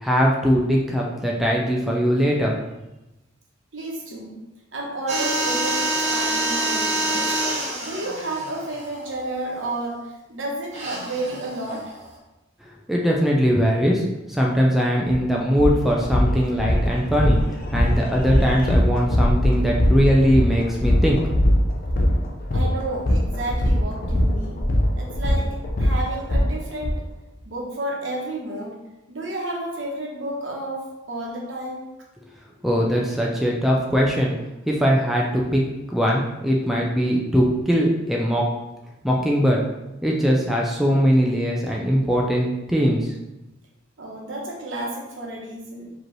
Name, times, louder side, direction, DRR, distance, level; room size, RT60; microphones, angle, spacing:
voice 1, 0.0-2.6 12.9-21.2 32.6-34.3 34.7-35.6 35.9-38.5 39.0-39.6 40.0-43.1, equal, ahead, -2 dB, 0.4 m, -21 dB
voice 2, 3.7-4.4 4.7-7.3 7.8-11.9 22.5-24.6 25.0-27.0 27.4-28.8 29.1-31.9 44.0-45.9, right 1 dB, 70° right, -2 dB, 1.0 m, -31 dB
sound 1, 5.1-9.6 10.7-12.1, right 2 dB, 35° right, 1.0 m, -26 dB
sound 2, 15.1-15.2 15.5-26.9, equal, 45° left, 0.6 m, -21 dB
4.8 x 3.0 x 3.1 m, 0.97 s
head